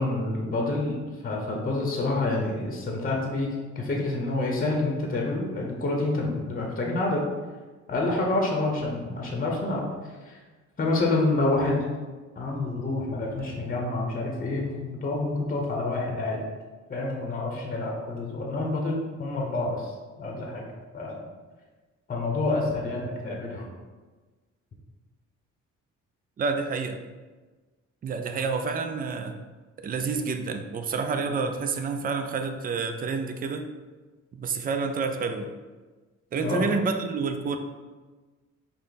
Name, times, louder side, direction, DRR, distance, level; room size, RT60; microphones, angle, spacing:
voice 1, 0.0-3.5 3.7-7.2 7.9-9.9 10.2-10.4 10.8-11.8 12.4-16.4 16.9-20.6 20.9-21.3 22.1-23.7 36.4-36.7, left 2 dB, 30° left, 0 dB, 0.8 m, -28 dB
voice 2, 26.4-27.0 28.0-29.3 29.8-33.7 34.3-35.5 36.3-37.6, right 4 dB, 30° right, 7 dB, 0.4 m, -29 dB
5.4 x 2.1 x 4.0 m, 1.3 s
cardioid pair, 90°, 30 cm